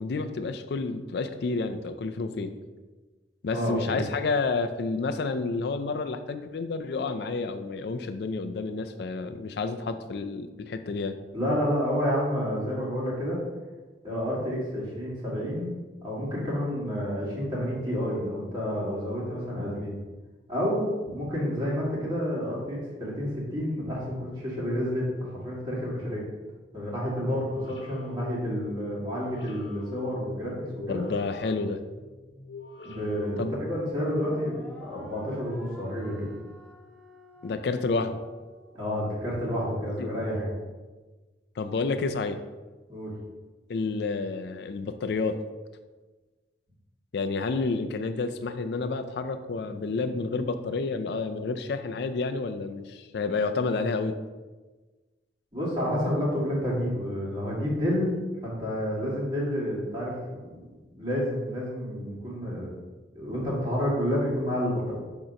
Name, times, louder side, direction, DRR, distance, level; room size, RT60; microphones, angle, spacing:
voice 1, 0.0-2.5 3.4-11.2 30.9-31.8 33.4-33.5 37.4-38.2 40.0-40.1 41.6-42.4 43.7-45.4 47.1-54.1, left 4 dB, 65° left, 8 dB, 0.4 m, -30 dB
voice 2, 3.5-4.0 11.3-13.4 14.0-15.7 16.0-19.9 20.5-26.2 26.7-31.0 32.8-36.3 38.7-40.4 42.9-43.1 55.5-58.2 58.4-60.6 60.9-62.7 63.1-64.9, equal, 25° right, -6 dB, 1.9 m, -29 dB
sound 1, 27.2-34.1, left 4 dB, 85° left, 0.9 m, -45 dB
sound 2, 32.9-39.4, equal, 5° left, 0.9 m, -49 dB
6.4 x 2.9 x 5.1 m, 1.3 s
head